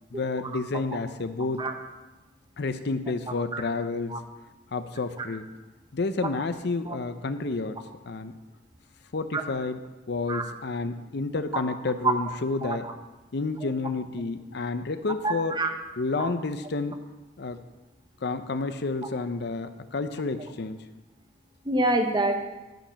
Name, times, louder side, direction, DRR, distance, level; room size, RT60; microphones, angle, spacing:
voice 1, 0.1-1.7 2.6-4.2 4.7-5.5 5.9-7.8 8.0-8.3 9.1-9.8 10.1-12.9 13.3-15.6 16.0-17.0 17.4-17.6 18.2-20.8, left 3 dB, 65° left, 11 dB, 0.6 m, -30 dB
voice 2, 15.2-15.7 16.2-16.3 21.6-22.4, right 2 dB, 25° right, 4 dB, 1.0 m, -26 dB
12.0 x 5.1 x 5.7 m, 1.1 s
head